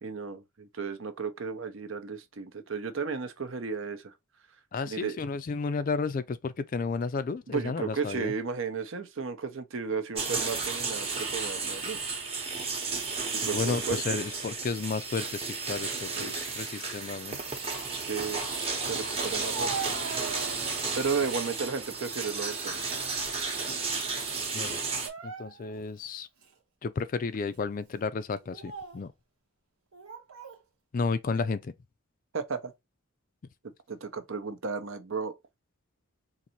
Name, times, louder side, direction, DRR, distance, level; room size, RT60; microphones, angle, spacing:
voice 1, 0.0-4.1 4.8-5.2 7.5-12.0 13.3-14.0 16.2-16.3 18.0-18.4 18.9-19.9 20.9-22.8 25.8-25.9 32.3-32.7 33.9-35.3, right 5 dB, 65° right, 0.7 m, -34 dB
voice 2, 4.7-8.3 13.4-17.4 24.5-24.8 25.2-26.3 26.8-29.1 30.9-31.7, left 4 dB, 40° left, 0.3 m, -32 dB
sound 1, 10.2-25.1, right 4 dB, 25° right, 0.9 m, -33 dB
Speech, 19.2-20.9 21.4-21.9 22.4-23.6 23.9-24.1 24.9-25.8 26.4-26.5 27.3-27.6 28.4-29.1 29.9-30.6, right 5 dB, 85° right, 1.1 m, -41 dB
3.9 x 2.6 x 2.8 m
head